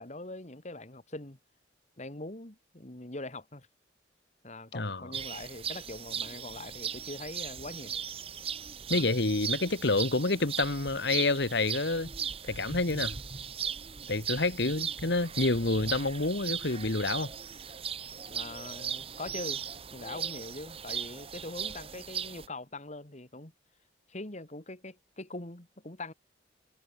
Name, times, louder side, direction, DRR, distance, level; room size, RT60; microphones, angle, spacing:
voice 1, 0.0-1.4 2.0-3.7 4.4-7.9 8.9-9.0 18.3-19.6 19.9-23.5 24.1-26.1, left 2 dB, 40° left, 2.4 m, -42 dB
voice 2, 4.7-5.1 8.9-12.1 12.4-13.2 14.1-17.3, left 2 dB, 60° left, 1.6 m, -28 dB
sound 1, 5.1-22.5, right 7 dB, 30° right, 1.2 m, -38 dB
head